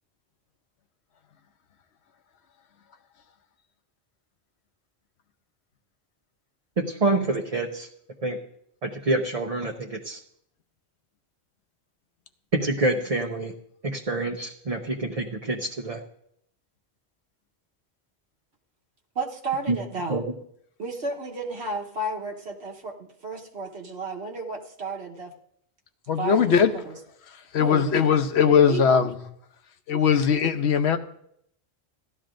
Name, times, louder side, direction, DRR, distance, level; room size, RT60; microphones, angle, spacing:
voice 1, 6.8-7.9 8.2-8.4 8.8-10.2 12.5-13.5 13.8-16.0 19.7-19.8 20.1-20.3, right 2 dB, 40° right, 0.8 m, -27 dB
voice 2, 19.1-20.2 20.8-25.3 26.2-27.0 27.6-28.0 28.5-28.8, right 3 dB, 80° right, 1.4 m, -32 dB
voice 3, 26.1-26.7 27.5-29.1 29.9-31.0, left 7 dB, 85° left, 1.0 m, -20 dB
16.5 x 12.0 x 2.5 m
omnidirectional pair, 1.1 m